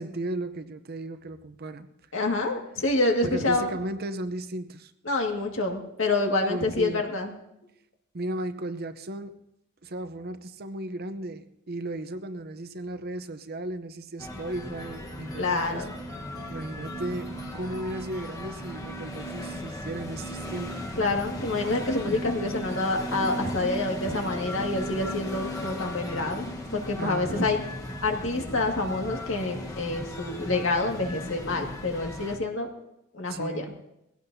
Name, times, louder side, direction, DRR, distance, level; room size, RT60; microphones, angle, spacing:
voice 1, 0.0-1.9 3.2-4.9 6.5-7.1 8.1-9.4 9.8-15.9 16.5-20.8 27.0-27.5 33.3-33.8, right 1 dB, 50° right, 10 dB, 0.8 m, -35 dB
voice 2, 2.1-3.8 5.1-7.3 15.4-15.9 21.0-27.6 28.0-32.7 33.1-33.6, left 2 dB, 70° left, 2 dB, 2.0 m, -27 dB
sound 1, 14.2-32.4, equal, 15° left, 1.2 m, -36 dB
20.5 x 16.5 x 2.8 m, 0.85 s
head